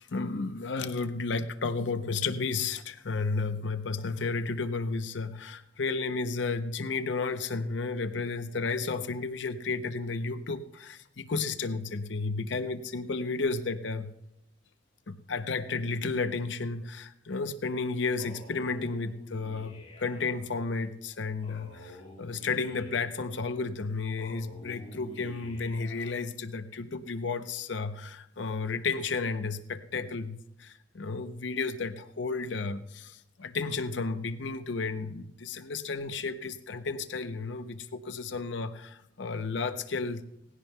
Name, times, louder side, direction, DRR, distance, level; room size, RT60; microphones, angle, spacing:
voice 1, 0.0-14.1 15.1-40.2, left 4 dB, 70° left, 10 dB, 0.7 m, -32 dB
Male speech man speaking, 18.2-20.4 21.4-23.2 24.2-26.2, equal, 30° left, 4.9 m, -49 dB
18.5 x 16.0 x 2.2 m, 0.80 s
head